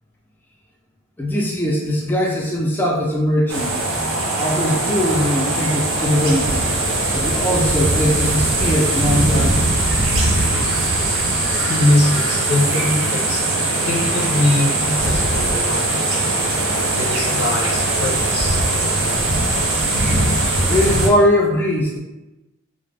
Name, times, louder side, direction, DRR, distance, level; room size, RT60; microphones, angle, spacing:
voice 1, 1.2-3.7 4.4-6.5 7.1-9.7 20.6-22.0, equal, 10° left, -3 dB, 0.3 m, -20 dB
sound 1, 3.5-21.1, right 2 dB, 65° right, 0.6 m, -20 dB
voice 2, 11.5-13.4 13.8-16.0 16.9-18.7, left 1 dB, 90° left, -1 dB, 0.6 m, -22 dB
2.4 x 2.0 x 3.2 m, 1.0 s
head